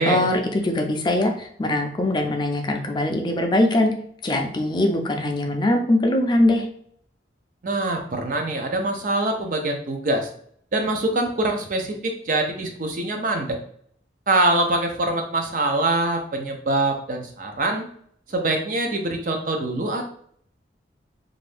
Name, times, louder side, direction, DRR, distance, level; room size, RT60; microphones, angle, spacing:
voice 1, 0.0-3.9 4.2-6.7, left 1 dB, 25° left, 3 dB, 0.4 m, -22 dB
voice 2, 7.6-10.3 10.7-13.6 14.3-17.8 18.3-20.0, right 2 dB, 50° right, 4 dB, 0.5 m, -24 dB
2.6 x 2.5 x 3.3 m, 0.63 s
head